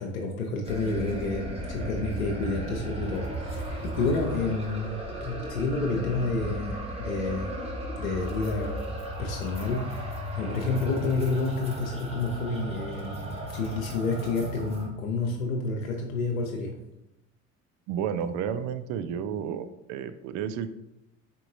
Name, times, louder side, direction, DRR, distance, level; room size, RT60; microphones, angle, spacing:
voice 1, 0.0-7.6 8.0-8.9 9.2-16.8, left 3 dB, 75° left, 1 dB, 0.6 m, -30 dB
sound 1, 0.6-14.9, equal, 15° right, 1.1 m, -35 dB
voice 2, 17.9-20.7, right 8 dB, 45° right, 11 dB, 0.4 m, -31 dB
4.2 x 3.7 x 2.5 m, 0.88 s
figure-of-eight pair, 60°, 41 cm